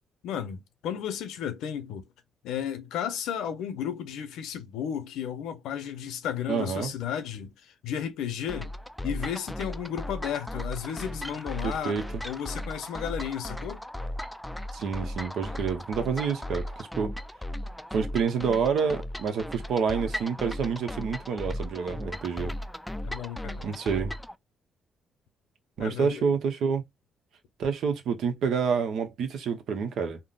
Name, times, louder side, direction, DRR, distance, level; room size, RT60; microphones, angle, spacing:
voice 1, 0.2-2.0 2.4-8.7 9.0-12.0 12.2-13.8 23.0-23.7 25.8-26.3, left 9 dB, 85° left, 0.6 m, -33 dB
voice 2, 6.5-6.9 11.6-12.2 14.7-17.1 17.9-22.5 23.6-24.1 25.8-26.8 27.6-30.2, right 6 dB, 75° right, 0.8 m, -28 dB
sound 1, 8.5-24.3, left 1 dB, 5° left, 0.3 m, -36 dB
3.7 x 2.0 x 2.4 m
cardioid pair, 75°, 0 cm